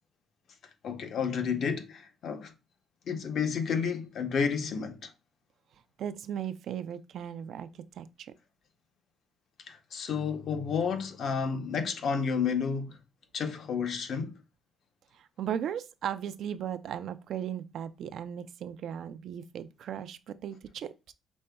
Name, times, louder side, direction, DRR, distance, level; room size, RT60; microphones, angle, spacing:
voice 1, 0.8-2.5 3.1-5.1 9.7-13.0 13.3-14.4, left 6 dB, 50° left, 0.7 m, -31 dB
voice 2, 6.0-7.7 8.0-8.3 15.2-21.1, right 9 dB, 60° right, 0.3 m, -37 dB
5.2 x 3.7 x 2.2 m
cardioid pair, 160°, 0 cm